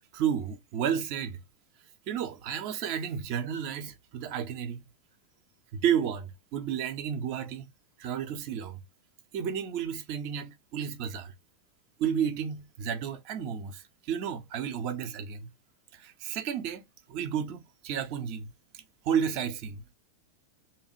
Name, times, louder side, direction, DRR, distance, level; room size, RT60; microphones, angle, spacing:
voice 1, 0.1-1.4 2.1-4.8 5.7-7.7 8.0-8.8 9.3-11.3 12.0-15.5 15.9-16.8 17.1-19.9, right 8 dB, 45° right, 0.6 m, -32 dB
2.8 x 2.3 x 3.0 m
figure-of-eight pair, 90°, 0 cm